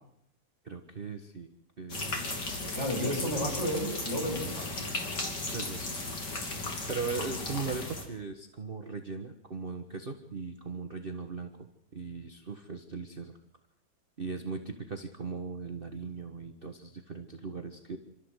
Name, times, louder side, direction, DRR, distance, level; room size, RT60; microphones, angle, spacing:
voice 1, 0.6-1.5 1.8-2.2 5.5-6.0 6.9-13.4 14.2-18.0, right 4 dB, 30° right, 5 dB, 1.3 m, -39 dB
sound 1, 1.9-8.0, left 2 dB, 60° left, 3.8 m, -36 dB
voice 2, 2.6-4.9, equal, 35° left, 0 dB, 6.7 m, -32 dB
27.5 x 13.5 x 8.1 m, 0.76 s
omnidirectional pair, 2.1 m